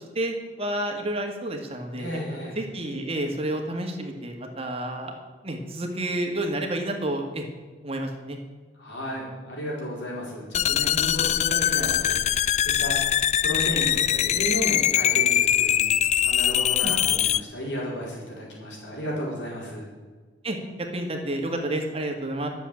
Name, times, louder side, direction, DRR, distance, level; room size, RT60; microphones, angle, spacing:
voice 1, 0.2-2.1 2.6-5.1 5.4-7.4 7.8-8.4 16.8-16.9 20.4-20.6 20.9-22.5, right 1 dB, 35° right, 2 dB, 1.8 m, -30 dB
voice 2, 1.9-2.6 8.7-13.0 13.4-19.9, equal, 80° left, -4 dB, 4.8 m, -33 dB
sound 1, 10.5-17.4, left 10 dB, 40° left, 0.3 m, -22 dB
12.0 x 7.4 x 8.5 m, 1.4 s
head